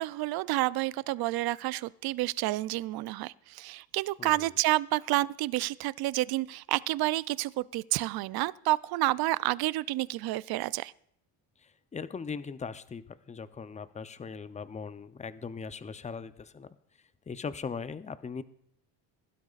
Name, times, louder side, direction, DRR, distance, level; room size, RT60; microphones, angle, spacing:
voice 1, 0.0-10.9, right 17 dB, 55° right, 20 dB, 0.5 m, -29 dB
voice 2, 11.6-16.7 17.3-18.4, left 5 dB, 15° left, 13 dB, 0.6 m, -39 dB
21.0 x 12.0 x 2.4 m, 0.68 s
supercardioid pair, 75°, 47 cm